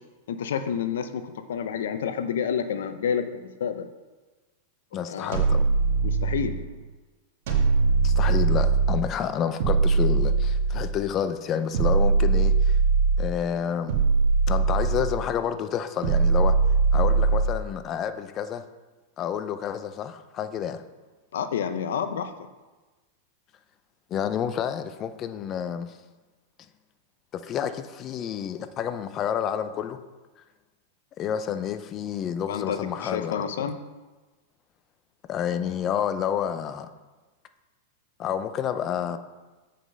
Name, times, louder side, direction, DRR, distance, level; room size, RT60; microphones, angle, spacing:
voice 1, 0.3-3.9 5.0-5.4 6.0-6.6 21.3-22.5 32.5-33.8, left 7 dB, 80° left, 10 dB, 0.7 m, -29 dB
voice 2, 4.9-5.7 8.0-12.8 13.2-13.9 14.5-16.6 16.9-18.6 19.2-20.8 24.1-25.9 27.3-30.0 31.2-33.7 35.3-36.9 38.2-39.2, left 8 dB, 35° left, 11 dB, 0.5 m, -29 dB
sound 1, 5.3-6.6 7.5-9.1 9.6-11.0 11.7-13.4 13.9-15.3 16.0-17.6, right 4 dB, 65° right, 1.8 m, -21 dB
7.7 x 5.1 x 5.4 m, 1.2 s
hypercardioid pair, 120°, 0 cm